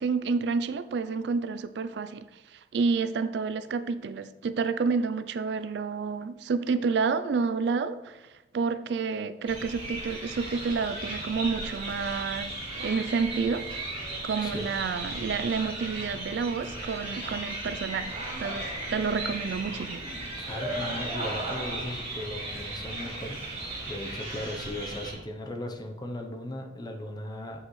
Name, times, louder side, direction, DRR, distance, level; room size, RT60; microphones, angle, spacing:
voice 1, 0.0-2.2 2.5-8.2 8.5-13.6 14.2-18.1 18.4-20.0, right 5 dB, 65° right, 13 dB, 0.3 m, -29 dB
sound 1, 9.4-25.1, right 2 dB, 30° right, 2.2 m, -36 dB
voice 2, 14.4-14.7 20.4-23.4 23.9-27.7, left 1 dB, 20° left, 4 dB, 0.7 m, -37 dB
7.4 x 6.5 x 3.1 m, 1.0 s
head